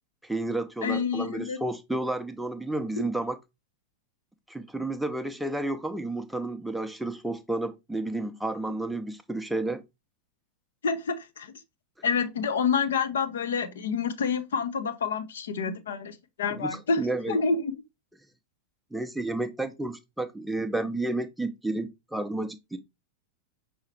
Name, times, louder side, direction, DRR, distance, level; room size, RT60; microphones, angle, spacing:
voice 1, 0.2-3.4 4.5-9.8 16.5-17.4 18.9-22.8, right 2 dB, 5° right, 0.6 m, -31 dB
voice 2, 0.8-1.6 3.0-3.1 10.8-11.5 12.0-17.7, left 5 dB, 65° left, 0.7 m, -28 dB
5.6 x 2.8 x 3.1 m
figure-of-eight pair, 90°, 0 cm